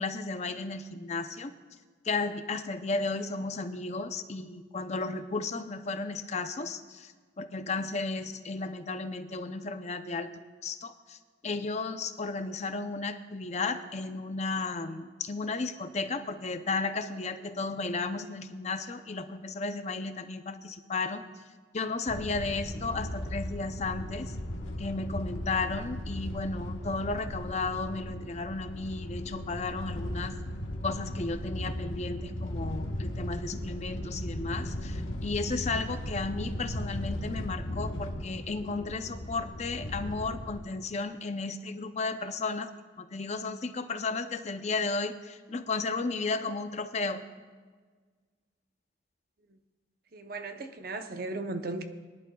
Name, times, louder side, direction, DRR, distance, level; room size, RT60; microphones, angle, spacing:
voice 1, 0.0-1.5 2.0-7.1 7.4-10.3 10.6-21.2 21.7-24.4 24.8-30.4 30.8-42.7 43.0-47.2, left 3 dB, 35° left, 0.5 m, -34 dB
sound 1, 22.1-40.6, left 1 dB, 90° left, 1.3 m, -37 dB
voice 2, 50.1-51.8, right 2 dB, 50° right, 0.7 m, -36 dB
22.0 x 11.0 x 2.3 m
head